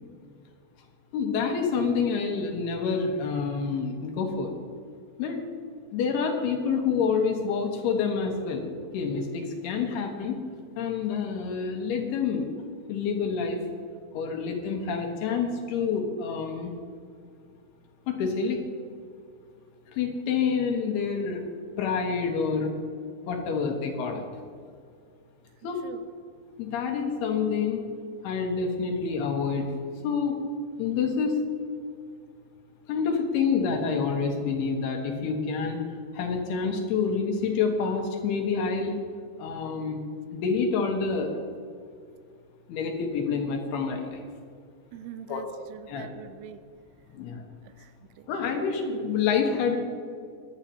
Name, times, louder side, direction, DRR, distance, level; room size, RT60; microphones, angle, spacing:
voice 1, 1.1-4.5 5.2-5.4 5.9-8.7 8.9-10.4 10.8-12.5 12.9-13.6 14.1-16.7 18.1-18.6 19.9-21.4 21.8-22.7 23.3-24.2 25.6-25.8 26.6-27.8 28.2-29.7 30.0-30.4 30.8-31.3 32.9-35.8 36.1-39.0 39.4-40.0 40.3-41.4 42.7-44.2 45.3-45.4 45.9-46.1 47.1-47.4 48.3-49.8, left 5 dB, 80° left, 2 dB, 3.2 m, -27 dB
voice 2, 44.9-46.7 47.6-48.3, right 10 dB, 85° right, 11 dB, 2.7 m, -44 dB
23.5 x 8.8 x 2.8 m, 2.3 s
omnidirectional pair, 4.7 m